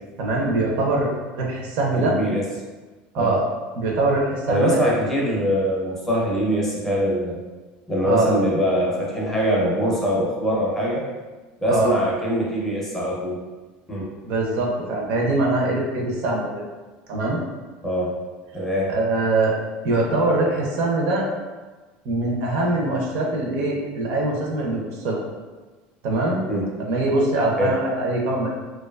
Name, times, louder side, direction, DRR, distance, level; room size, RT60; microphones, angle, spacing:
voice 1, 0.2-1.1 1.3-2.2 3.1-3.4 3.8-4.8 8.0-8.3 11.7-11.9 14.2-16.6 17.1-17.4 18.9-19.6 19.8-21.3 22.0-25.2 26.0-26.4 26.8-28.5, right 2 dB, 55° right, -1 dB, 0.5 m, -22 dB
voice 2, 1.9-2.4 3.2-3.3 4.5-7.4 7.9-11.0 11.6-13.4 13.9-14.1 17.8-18.2 18.5-18.9 26.5-26.7 27.6-27.7, equal, 10° left, -5 dB, 0.4 m, -23 dB
2.6 x 2.2 x 2.2 m, 1.3 s
cardioid pair, 165°, 4 cm